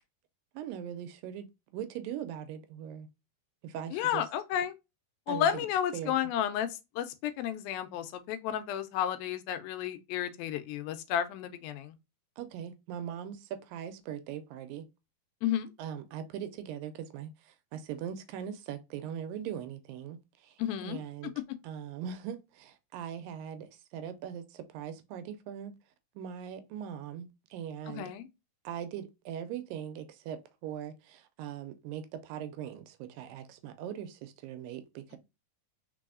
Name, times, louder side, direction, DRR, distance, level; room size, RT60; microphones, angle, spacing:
voice 1, 0.5-3.1 3.6-4.2 5.3-5.7 5.9-6.1 12.4-14.9 15.8-21.3 21.6-25.8 26.2-28.1 28.6-35.2, right 9 dB, 80° right, 2.2 m, -40 dB
voice 2, 3.9-4.7 5.3-11.9 15.4-15.7 20.6-21.0 27.9-28.3, left 10 dB, 85° left, 2.4 m, -32 dB
4.6 x 4.2 x 2.4 m
omnidirectional pair, 4.2 m